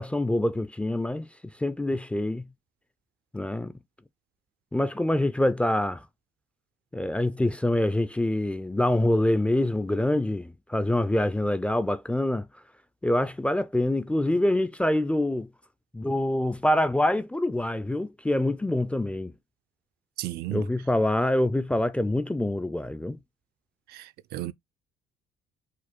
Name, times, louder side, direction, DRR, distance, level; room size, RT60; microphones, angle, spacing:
voice 1, 0.0-2.5 3.3-3.7 4.7-6.0 6.9-12.5 13.0-15.5 15.9-19.3 20.5-23.2, left 1 dB, 5° left, 0.3 m, -25 dB
voice 2, 20.2-20.6 23.9-24.5, right 15 dB, 70° right, 0.4 m, -34 dB
4.9 x 2.1 x 4.3 m
cardioid pair, 110°, 17 cm